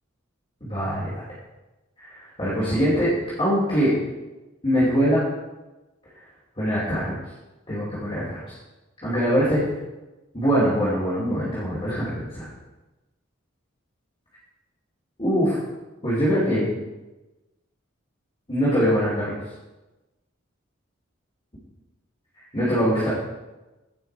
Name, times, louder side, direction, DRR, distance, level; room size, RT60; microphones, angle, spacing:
voice 1, 0.6-1.2 2.0-3.1 3.4-3.9 4.6-5.2 6.6-7.2 7.7-8.5 9.0-9.6 10.3-12.5 15.2-15.6 16.0-16.7 18.5-19.4 22.5-23.1, equal, 25° left, -9 dB, 2.7 m, -23 dB
16.5 x 5.6 x 4.6 m, 1.1 s
head